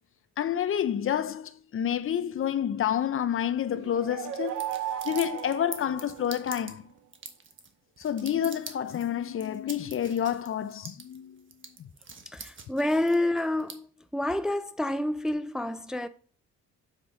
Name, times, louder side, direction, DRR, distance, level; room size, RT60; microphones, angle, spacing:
voice 1, 0.4-4.7 5.0-6.8 8.0-11.4 11.8-11.9, left 9 dB, 45° left, 0.5 m, -29 dB
sound 1, 3.7-6.6, right 11 dB, 80° right, 0.9 m, -36 dB
sound 2, 4.3-13.7, right 5 dB, 40° right, 1.3 m, -44 dB
voice 2, 12.3-13.9 14.1-16.1, left 1 dB, ahead, 0.4 m, -28 dB
7.4 x 5.0 x 4.0 m
cardioid pair, 90°, 30 cm